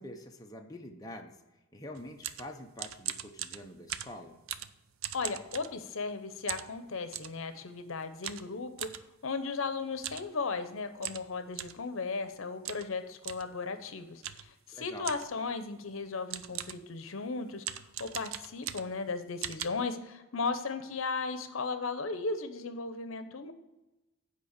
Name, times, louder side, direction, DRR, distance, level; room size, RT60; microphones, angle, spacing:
voice 1, 0.0-1.4 1.7-4.4 14.7-15.1, left 1 dB, 20° left, 2 dB, 0.7 m, -46 dB
sound 1, 1.9-6.1 6.5-7.4 8.2-9.0 9.9-10.3 10.6-10.7 11.0-11.8 12.6-12.9 13.2-13.5 14.2-14.5 15.0-15.4 16.0-16.1 16.3-16.9 17.6-19.1 19.4-19.7, right 10 dB, 75° right, 0.5 m, -40 dB
voice 2, 5.1-8.9 9.2-17.6 18.0-23.5, left 4 dB, 70° left, 9 dB, 0.8 m, -36 dB
8.3 x 5.1 x 6.5 m, 1.0 s
head